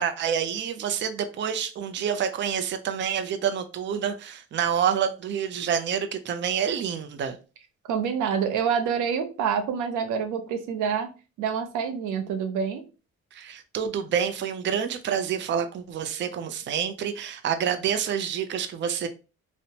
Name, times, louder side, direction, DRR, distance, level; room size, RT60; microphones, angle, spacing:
voice 1, 0.0-7.4 13.3-19.1, right 8 dB, 40° right, 0.4 m, -28 dB
voice 2, 7.9-11.1 11.4-12.8, right 7 dB, 90° right, 0.6 m, -27 dB
2.8 x 2.1 x 2.7 m
cardioid pair, 90°, 30 cm